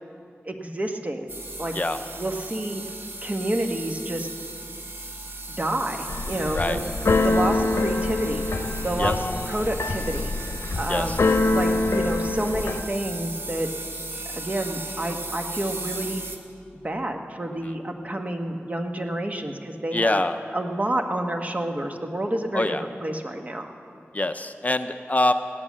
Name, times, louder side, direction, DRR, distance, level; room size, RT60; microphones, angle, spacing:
voice 1, 0.4-1.3 1.6-1.7 2.1-2.8 3.2-4.3 5.6-9.2 9.5-10.3 10.7-13.7 14.3-16.2 16.8-20.2 20.5-23.7, right 1 dB, 35° right, 4 dB, 1.3 m, -29 dB
sound 1, 1.3-16.4, right 2 dB, 55° right, 1.4 m, -36 dB
Keyboard (musical), 6.1-12.8, left 2 dB, 70° left, 0.8 m, -25 dB
voice 2, 19.9-20.4 22.5-22.8 24.1-25.3, left 2 dB, 35° left, 9 dB, 0.6 m, -24 dB
16.5 x 10.5 x 7.3 m, 2.5 s
wide cardioid pair, 60°, 5 cm